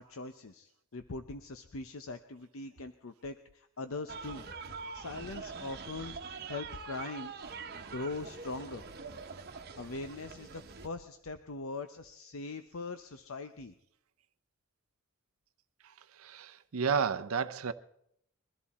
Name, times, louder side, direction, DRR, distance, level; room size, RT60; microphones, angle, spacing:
voice 1, 0.0-4.5 4.9-7.3 7.7-8.8 9.8-13.7, left 3 dB, 65° left, 0.7 m, -41 dB
sound 1, 4.1-10.9, right 5 dB, 50° right, 1.1 m, -44 dB
voice 2, 16.2-17.7, right 6 dB, 75° right, 0.7 m, -31 dB
22.0 x 13.5 x 4.2 m
head